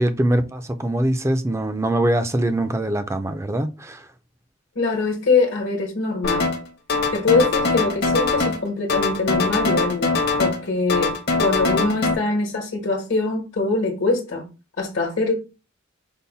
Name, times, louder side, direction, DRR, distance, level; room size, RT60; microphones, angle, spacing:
voice 1, 0.0-4.1, right 1 dB, 15° right, 0.4 m, -22 dB
voice 2, 4.7-6.5 7.1-11.1 11.4-14.5 14.8-15.3, left 3 dB, 75° left, 1.2 m, -23 dB
sound 1, 6.2-6.6 6.9-8.6 8.9-10.6 10.9-12.1, left 3 dB, 50° left, 0.8 m, -22 dB
5.4 x 2.1 x 4.0 m
head